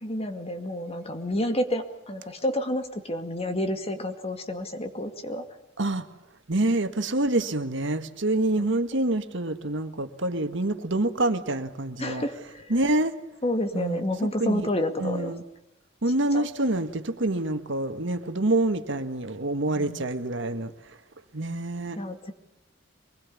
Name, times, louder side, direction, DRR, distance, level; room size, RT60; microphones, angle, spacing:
voice 1, 0.0-5.5 8.6-8.7 12.0-12.7 13.4-15.3 16.3-16.5 19.8-20.1 22.0-22.3, left 1 dB, 30° left, 2.3 m, -29 dB
voice 2, 6.5-12.2 12.7-13.2 13.7-14.0 14.4-14.7 15.0-15.4 16.0-20.7 21.3-22.0, right 2 dB, 65° right, 1.7 m, -26 dB
24.0 x 21.0 x 8.5 m
head